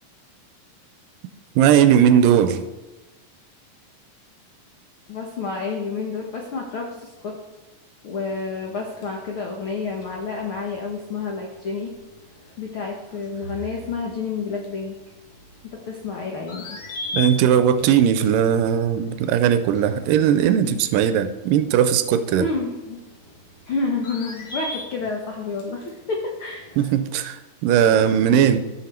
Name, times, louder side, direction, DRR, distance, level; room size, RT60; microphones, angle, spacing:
voice 1, 1.6-2.7 17.1-22.5 26.8-28.6, right 9 dB, 80° right, 11 dB, 2.1 m, -18 dB
voice 2, 5.1-7.3 8.0-11.9 12.6-14.9 15.8-16.6 22.3-23.0 23.7-26.6, left 4 dB, 70° left, 0 dB, 1.2 m, -29 dB
sound 1, 8.3-26.9, left 3 dB, 55° left, 3.2 m, -41 dB
16.0 x 5.8 x 4.4 m, 1.1 s
omnidirectional pair, 4.0 m